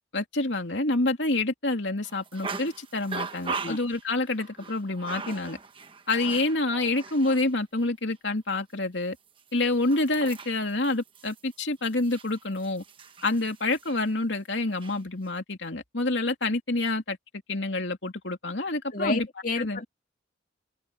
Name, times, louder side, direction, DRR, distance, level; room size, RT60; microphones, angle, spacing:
voice 1, 0.1-5.6 6.1-9.2 9.5-12.8 13.2-17.2 17.5-19.3 19.6-19.8, left 2 dB, 70° left, 2.8 m, -27 dB
sound 1, 2.0-7.5 7.8-7.9 9.4-14.1 14.6-15.0, right 4 dB, 25° right, 1.2 m, -40 dB
voice 2, 18.9-19.8, left 3 dB, 45° left, 2.8 m, -30 dB
open air
head